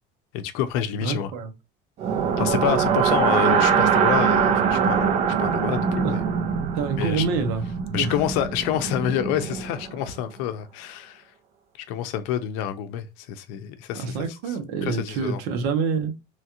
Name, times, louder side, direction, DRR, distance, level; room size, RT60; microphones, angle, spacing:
voice 1, 0.3-1.3 2.4-6.2 7.0-7.2 7.9-11.2 11.9-14.2 14.8-15.4, left 10 dB, 70° left, 0.5 m, -28 dB
voice 2, 1.0-1.5 2.8-3.0 6.0-6.2 6.7-7.6 8.0-8.2 13.9-16.2, right 5 dB, 75° right, 0.9 m, -27 dB
sound 1, 2.0-10.0, right 7 dB, 30° right, 0.4 m, -23 dB
3.1 x 2.4 x 2.8 m
cardioid pair, 170°, 21 cm